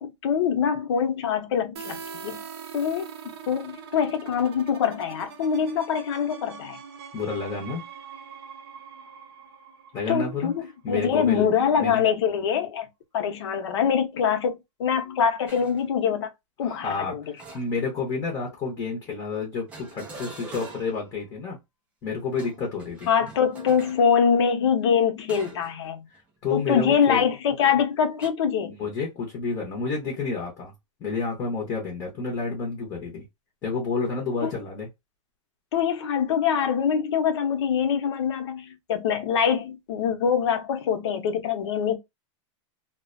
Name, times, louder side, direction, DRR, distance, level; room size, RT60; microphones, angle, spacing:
voice 1, 0.0-2.4 2.7-6.8 10.1-12.9 13.1-16.3 16.6-17.2 23.1-26.1 26.5-28.8 34.4-34.5 35.7-42.0, left 7 dB, 60° left, 0.8 m, -24 dB
sound 1, 1.8-11.3, right 7 dB, 50° right, 0.6 m, -43 dB
voice 2, 7.1-7.8 9.9-10.5 10.8-11.5 11.8-12.0 16.6-21.6 22.0-23.1 26.4-27.2 28.7-30.7 31.0-33.2 33.6-34.9, left 4 dB, 20° left, 0.7 m, -30 dB
sound 2, 15.5-15.8 17.4-18.1 19.7-21.1 22.3-24.0 25.3-25.8 26.1-26.4 28.2-28.3, right 3 dB, 10° right, 0.3 m, -44 dB
2.4 x 2.1 x 2.4 m
supercardioid pair, 175°, 16 cm